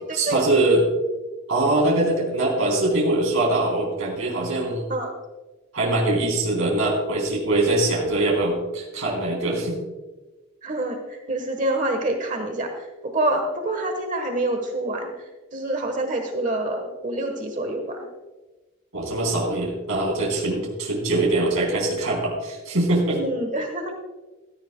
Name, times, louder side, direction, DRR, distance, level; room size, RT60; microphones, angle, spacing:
voice 1, 0.1-0.8 1.5-4.9 5.7-9.8 18.9-23.2, right 2 dB, 70° right, -3 dB, 3.5 m, -22 dB
voice 2, 10.6-18.1 23.2-23.9, right 1 dB, 35° right, 5 dB, 1.2 m, -27 dB
16.5 x 14.0 x 2.2 m, 1.2 s
head